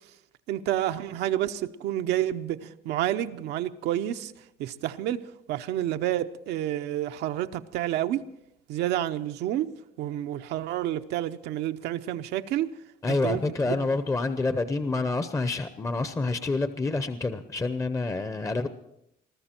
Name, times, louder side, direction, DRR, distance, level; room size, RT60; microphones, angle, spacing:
voice 1, 0.5-4.3 4.6-5.2 5.5-8.2 8.7-9.7 10.0-12.7 13.2-13.9, right 12 dB, 80° right, 8 dB, 0.7 m, -29 dB
voice 2, 13.0-18.7, left 3 dB, 20° left, 11 dB, 0.7 m, -28 dB
21.5 x 13.5 x 4.4 m, 0.81 s
cardioid pair, 110°, 17 cm